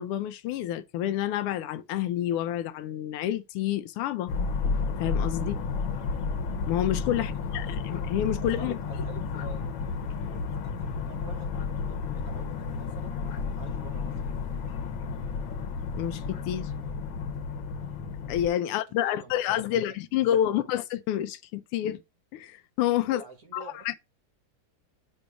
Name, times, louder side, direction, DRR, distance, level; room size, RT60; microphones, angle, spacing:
voice 1, 0.0-4.3 5.0-5.6 6.7-8.7 16.0-16.7 18.3-22.0 22.3-23.2 23.5-23.9, left 11 dB, 90° left, 1.5 m, -29 dB
sound 1, 4.3-18.5, left 5 dB, 70° left, 1.6 m, -32 dB
voice 2, 7.2-8.0 8.4-9.7 10.3-13.2 13.5-14.6 18.6-19.4 19.7-20.0 20.5-20.7 23.1-23.9, right 2 dB, 50° right, 1.2 m, -48 dB
5.3 x 4.0 x 4.7 m
omnidirectional pair, 2.4 m